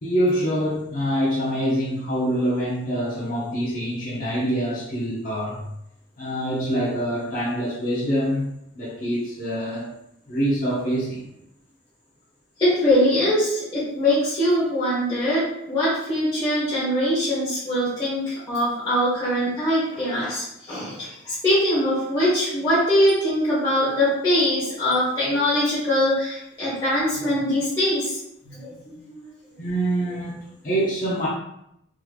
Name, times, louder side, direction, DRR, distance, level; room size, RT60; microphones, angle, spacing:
voice 1, 0.0-5.7 6.2-9.9 10.3-11.2 29.6-31.3, equal, 45° left, -8 dB, 0.8 m, -25 dB
voice 2, 12.6-28.1 28.4-28.9, left 1 dB, 25° left, -12 dB, 1.2 m, -22 dB
3.7 x 3.1 x 2.3 m, 0.79 s
head